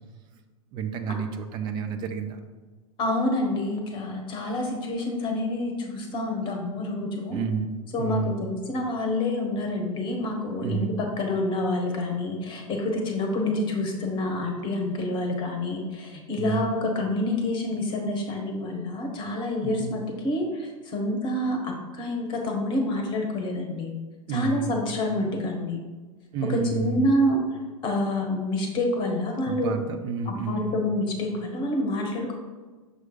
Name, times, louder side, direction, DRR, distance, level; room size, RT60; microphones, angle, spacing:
voice 1, 0.7-2.4 7.3-7.7 8.0-8.4 10.6-10.9 16.4-16.7 19.6-19.9 24.3-24.8 26.3-27.2 29.5-30.8, right 5 dB, 25° right, 6 dB, 0.4 m, -30 dB
voice 2, 3.0-7.4 7.9-23.9 24.3-25.8 26.5-29.7 30.2-32.3, left 1 dB, 25° left, 2 dB, 1.2 m, -27 dB
6.4 x 3.1 x 5.3 m, 1.3 s
figure-of-eight pair, 100°, 19 cm